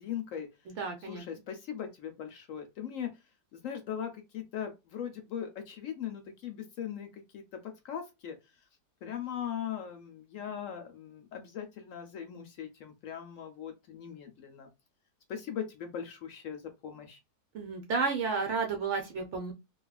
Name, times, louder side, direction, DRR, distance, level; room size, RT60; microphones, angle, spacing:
voice 1, 0.0-0.5 1.1-3.1 3.5-8.4 9.0-14.7 15.3-17.2, left 9 dB, 70° left, 0.8 m, -39 dB
voice 2, 0.7-1.2 17.5-19.5, right 4 dB, 60° right, 0.8 m, -32 dB
2.9 x 2.4 x 2.2 m
omnidirectional pair, 1.7 m